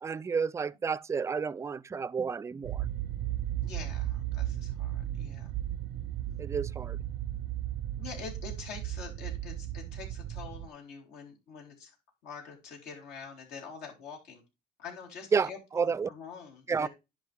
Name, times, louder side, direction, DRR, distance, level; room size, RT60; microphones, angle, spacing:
voice 1, 0.0-2.9 6.4-7.0 15.3-16.1 16.7-16.9, right 6 dB, 15° right, 0.3 m, -31 dB
sound 1, 2.6-10.7, right 13 dB, 75° right, 0.5 m, -35 dB
voice 2, 3.6-5.5 6.2-6.4 8.0-11.9 12.2-14.4 14.8-16.9, left 5 dB, 80° left, 3.8 m, -45 dB
10.5 x 5.2 x 3.4 m
cardioid pair, 110°, 17 cm